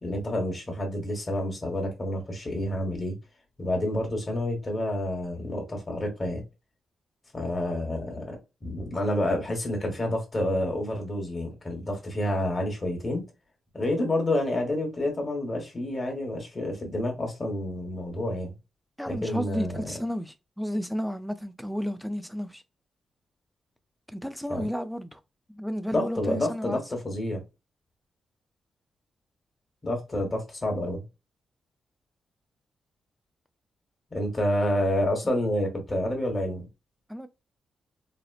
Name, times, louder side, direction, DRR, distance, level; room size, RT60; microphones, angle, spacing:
voice 1, 0.0-3.2 3.6-6.4 7.3-13.3 13.7-18.6 19.1-19.9 24.5-24.7 25.9-27.4 29.8-31.0 34.1-36.7, left 1 dB, 25° left, 1.1 m, -29 dB
voice 2, 19.0-22.6 24.1-25.2 25.5-26.8 35.2-35.3 37.1-37.3, equal, ahead, 0.3 m, -32 dB
4.2 x 2.0 x 2.4 m
wide cardioid pair, 155°, 0 cm